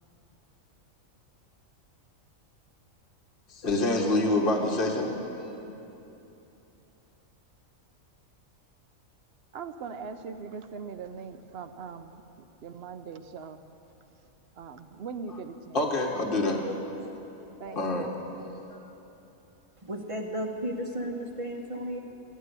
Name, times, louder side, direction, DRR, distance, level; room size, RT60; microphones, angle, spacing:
voice 1, 3.5-5.7 15.7-16.9 17.7-18.1 18.4-18.8, left 2 dB, 40° left, 0 dB, 1.5 m, -27 dB
voice 2, 9.5-12.2 12.6-13.6 14.6-15.8 17.6-18.1, right 5 dB, 60° right, 9 dB, 0.7 m, -40 dB
voice 3, 19.8-22.0, equal, 30° right, 2 dB, 0.8 m, -34 dB
13.0 x 10.0 x 8.1 m, 3.0 s
omnidirectional pair, 1.4 m